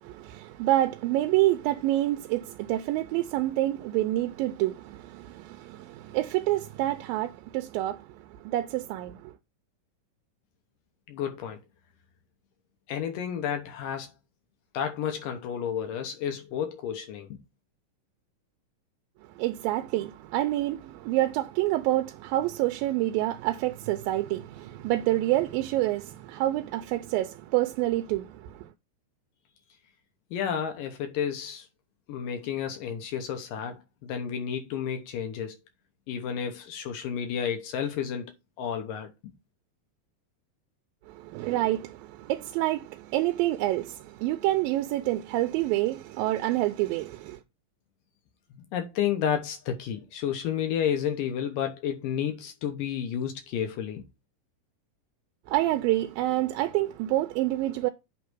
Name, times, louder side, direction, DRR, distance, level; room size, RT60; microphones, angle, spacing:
voice 1, 0.0-9.3 19.3-28.7 41.1-47.4 55.5-57.9, right 15 dB, 90° right, 2.4 m, -27 dB
voice 2, 11.1-11.6 12.9-14.1 14.7-17.4 30.3-31.7 32.1-35.6 36.1-39.3 48.5-54.0, left 8 dB, 75° left, 2.6 m, -31 dB
8.4 x 3.2 x 6.2 m
omnidirectional pair, 4.0 m